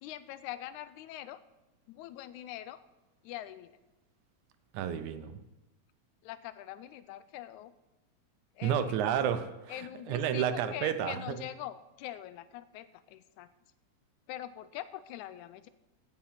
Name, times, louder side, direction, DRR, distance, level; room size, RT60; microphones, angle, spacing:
voice 1, 0.0-1.4 1.9-2.8 3.2-3.7 6.2-7.7 8.6-9.0 9.7-13.5 14.3-15.7, left 13 dB, 85° left, 14 dB, 2.0 m, -43 dB
voice 2, 4.7-5.4 8.6-11.4, right 9 dB, 80° right, 10 dB, 2.2 m, -31 dB
16.0 x 6.0 x 5.7 m, 0.99 s
omnidirectional pair, 3.4 m